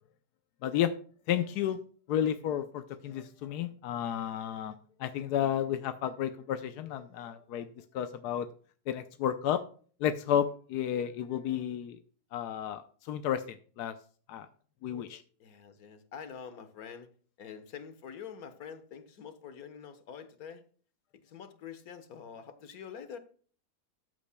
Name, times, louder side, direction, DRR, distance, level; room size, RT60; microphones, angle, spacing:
voice 1, 0.6-0.9 1.3-1.8 2.1-4.7 5.0-7.7 7.9-8.5 8.9-9.6 10.0-12.0 12.3-12.8 13.1-14.0 14.3-14.5 14.8-15.2, left 10 dB, 90° left, 1.2 m, -32 dB
voice 2, 15.4-17.1 17.4-20.6 21.2-23.2, left 7 dB, 65° left, 1.6 m, -46 dB
14.0 x 8.4 x 2.2 m
omnidirectional pair, 1.7 m